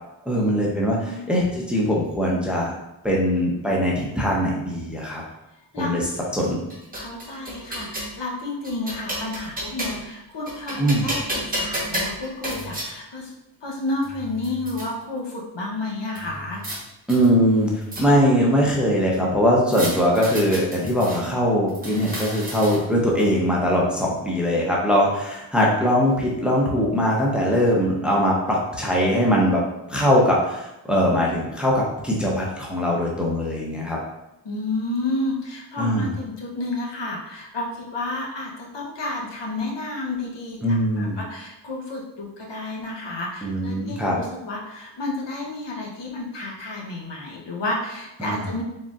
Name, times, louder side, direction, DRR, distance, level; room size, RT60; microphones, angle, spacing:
voice 1, 0.2-1.0 1.3-2.7 3.0-5.2 5.8-6.0 6.3-6.6 10.8-11.0 17.1-29.6 29.9-34.0 35.8-36.1 40.6-41.2 43.4-44.1 48.2-48.4, equal, ahead, -4 dB, 0.7 m, -21 dB
voice 2, 5.7-6.1 6.9-13.3 13.6-16.6 34.4-48.6, left 2 dB, 70° left, -2 dB, 0.9 m, -31 dB
sound 1, 6.4-8.1 8.6-10.1 10.5-12.9 13.7-13.8 14.0-14.9 16.1-16.8 17.1-18.4 19.7-21.2 21.7-23.0, equal, 20° right, 1.0 m, -32 dB
4.2 x 3.6 x 2.4 m, 0.91 s
wide cardioid pair, 125°, 46 cm